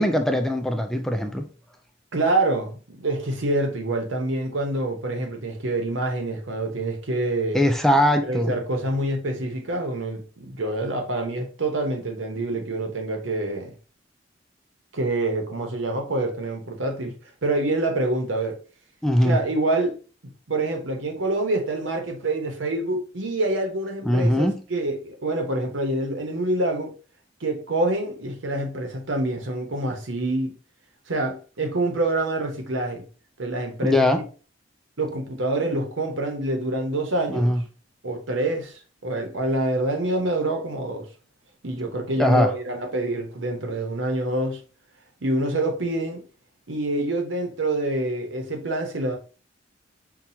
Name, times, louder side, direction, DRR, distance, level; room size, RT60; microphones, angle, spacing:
voice 1, 0.0-1.5 7.5-8.5 19.0-19.4 24.0-24.6 33.8-34.2 37.3-37.6 42.2-42.5, left 1 dB, ahead, 0.3 m, -21 dB
voice 2, 2.1-7.6 8.2-13.7 14.9-17.2 17.4-18.6 19.2-20.0 20.5-26.9 27.4-30.5 31.1-33.0 33.4-34.0 35.0-37.6 38.0-41.1 41.6-44.6 45.2-46.2 46.7-49.2, right 2 dB, 85° right, 0.9 m, -26 dB
5.9 x 2.3 x 2.7 m
head